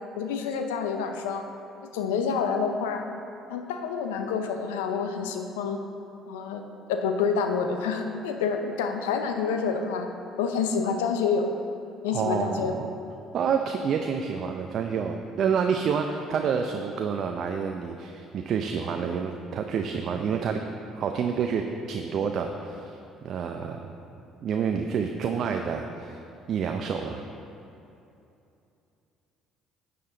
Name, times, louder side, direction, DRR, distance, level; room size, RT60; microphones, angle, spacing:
voice 1, 0.0-1.4 1.8-3.0 3.5-5.8 6.3-10.1 10.4-11.5 12.0-12.8, left 5 dB, 85° left, 5 dB, 0.6 m, -28 dB
voice 2, 12.1-12.9 13.3-20.6 21.0-23.8 24.4-26.2 26.5-27.2, right 6 dB, 60° right, 4 dB, 0.5 m, -28 dB
11.0 x 6.8 x 3.9 m, 2.8 s
hypercardioid pair, 60°, 0 cm